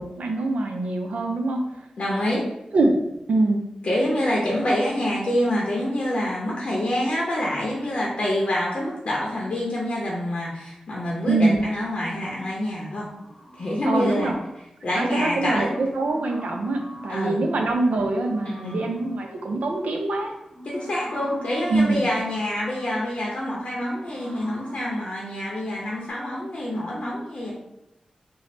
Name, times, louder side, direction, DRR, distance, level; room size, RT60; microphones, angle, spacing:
voice 1, 0.0-1.6 2.7-2.9 3.3-3.6 11.3-11.6 13.9-14.4 15.0-20.3 21.7-22.0, right 2 dB, 85° right, 3 dB, 0.5 m, -24 dB
voice 2, 2.0-2.5 3.8-13.1 13.6-14.3 14.8-15.8 17.1-17.4 18.5-18.8 20.6-27.5, left 1 dB, 55° left, -4 dB, 0.6 m, -26 dB
sound 1, 13.1-14.6 15.0-17.4 17.9-26.1, equal, ahead, 0.6 m, -45 dB
3.1 x 2.0 x 4.0 m, 0.88 s
wide cardioid pair, 110°, 2 cm